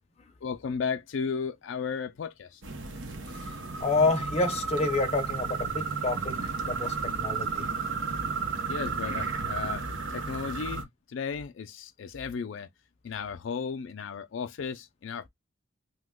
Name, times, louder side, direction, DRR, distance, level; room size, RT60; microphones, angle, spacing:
voice 1, 0.4-2.6 8.7-9.8 10.1-12.7 13.0-15.3, left 6 dB, 75° left, 0.4 m, -34 dB
sound 1, 2.6-10.8, right 5 dB, 70° right, 0.8 m, -33 dB
voice 2, 3.3-7.7, left 3 dB, 35° left, 0.6 m, -29 dB
2.9 x 2.2 x 3.5 m
head